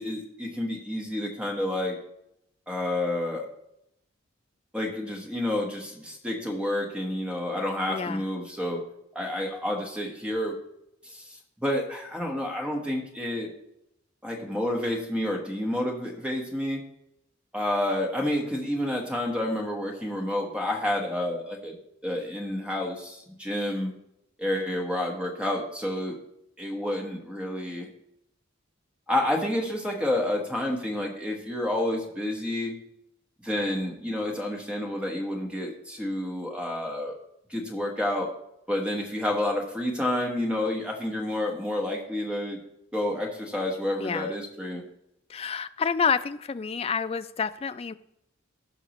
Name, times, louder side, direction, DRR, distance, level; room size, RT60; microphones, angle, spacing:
voice 1, 0.0-2.0 2.7-3.5 4.7-8.8 9.1-10.5 11.0-13.5 14.2-16.8 17.5-21.8 22.0-23.9 24.4-26.2 26.6-27.9 29.1-32.7 33.4-37.2 37.5-38.3 38.7-42.6 42.9-44.8, left 1 dB, 5° right, 0 dB, 1.3 m, -29 dB
voice 2, 7.9-8.2 44.0-44.3 45.3-47.9, left 6 dB, 30° left, 12 dB, 0.3 m, -28 dB
16.5 x 5.8 x 3.1 m, 0.79 s
head